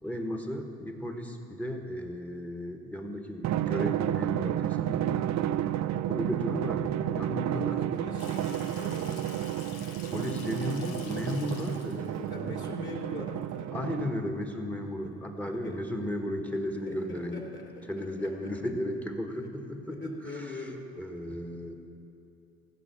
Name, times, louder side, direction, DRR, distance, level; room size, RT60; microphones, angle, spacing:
voice 1, 0.0-5.3 6.1-7.8 10.0-12.6 13.7-17.4 17.9-20.7 21.0-21.7, left 1 dB, 5° left, 3 dB, 1.5 m, -35 dB
Drum, 3.4-14.4, right 12 dB, 55° right, 0.5 m, -31 dB
voice 2, 7.5-9.5 12.3-13.9 15.0-15.1 15.4-15.8 16.8-18.5 19.9-20.8, left 2 dB, 35° left, 0 dB, 2.9 m, -42 dB
Water tap faucet / Sink (filling or washing), 8.2-13.6, left 6 dB, 85° left, 1.1 m, -49 dB
15.0 x 6.3 x 7.9 m, 2.8 s
supercardioid pair, 65°, 32 cm